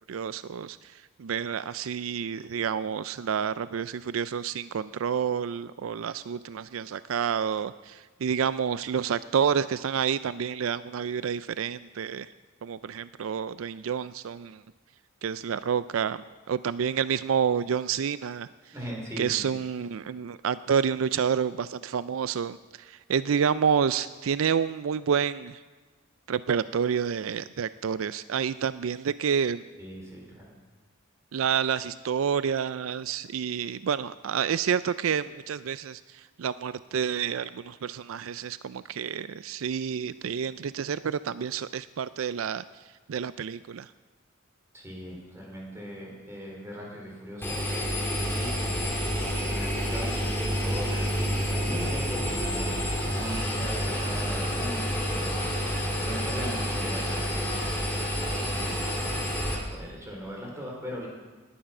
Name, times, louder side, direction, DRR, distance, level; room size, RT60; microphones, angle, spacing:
voice 1, 0.1-0.8 1.2-12.3 12.6-14.6 15.2-16.2 16.5-18.5 19.2-25.6 26.3-29.6 31.3-36.0 36.4-42.6 43.1-43.9, right 7 dB, 85° right, 15 dB, 0.4 m, -29 dB
voice 2, 18.7-19.5 29.8-30.5 44.7-55.5 56.0-61.1, equal, 15° right, -2 dB, 4.3 m, -40 dB
Engine, 47.4-59.5, equal, 10° left, 3.2 m, -29 dB
19.0 x 10.0 x 6.1 m, 1.3 s
head